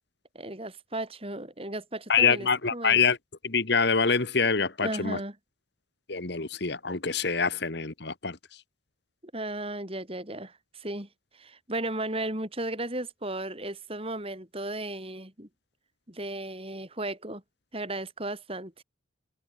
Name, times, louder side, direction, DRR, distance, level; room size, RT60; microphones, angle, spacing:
voice 1, 0.3-3.0 4.8-5.4 9.3-11.1 11.3-15.5 16.1-17.4 17.7-18.8, right 1 dB, 30° right, 4.7 m, -35 dB
voice 2, 2.1-3.2 3.4-5.2 6.1-8.4, left 5 dB, 55° left, 1.5 m, -25 dB
head